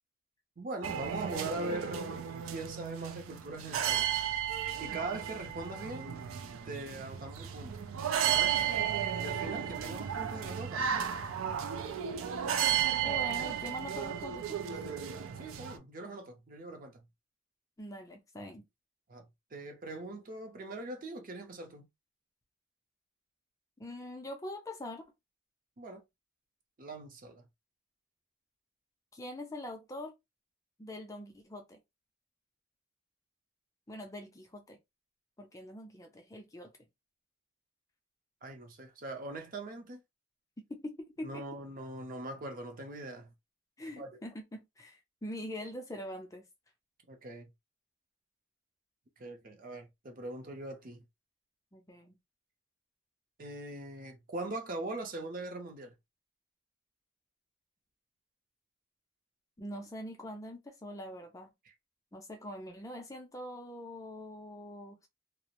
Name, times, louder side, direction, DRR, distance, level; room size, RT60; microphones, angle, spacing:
voice 1, 0.6-4.1 4.8-6.2 6.7-7.9 8.2-8.6 9.2-11.0 15.4-17.0 19.1-19.3 19.5-21.9 25.8-26.0 26.8-27.4 38.4-40.0 41.2-43.3 44.0-44.2 47.1-47.5 49.2-51.0 53.4-55.9 61.7-61.8, right 2 dB, 45° right, 0.6 m, -41 dB
sound 1, 0.8-15.8, right 9 dB, 90° right, 0.4 m, -34 dB
voice 2, 12.9-14.9 17.8-18.6 23.8-25.0 29.1-30.1 30.8-31.8 33.9-34.8 35.4-36.7 40.7-41.4 43.8-46.5 51.7-52.2 59.6-61.5 62.1-65.1, left 1 dB, 15° left, 0.4 m, -43 dB
2.3 x 2.0 x 2.8 m
head